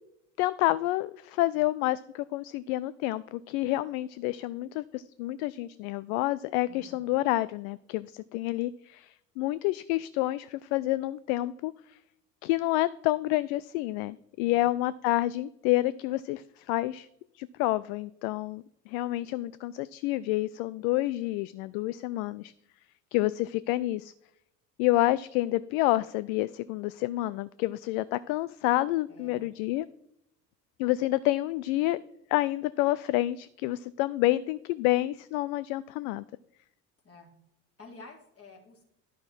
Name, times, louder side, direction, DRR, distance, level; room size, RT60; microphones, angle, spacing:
voice 1, 0.4-12.0 12.4-17.1 17.3-22.5 23.1-24.1 24.8-29.9 30.8-32.0 32.3-36.2, left 17 dB, 60° left, 17 dB, 0.5 m, -29 dB
voice 2, 6.6-7.0 14.4-14.7 29.1-29.5 37.0-37.3 37.8-38.8, left 3 dB, 30° left, 0 dB, 3.3 m, -51 dB
11.5 x 6.3 x 4.4 m, 0.82 s
hypercardioid pair, 65°, 49 cm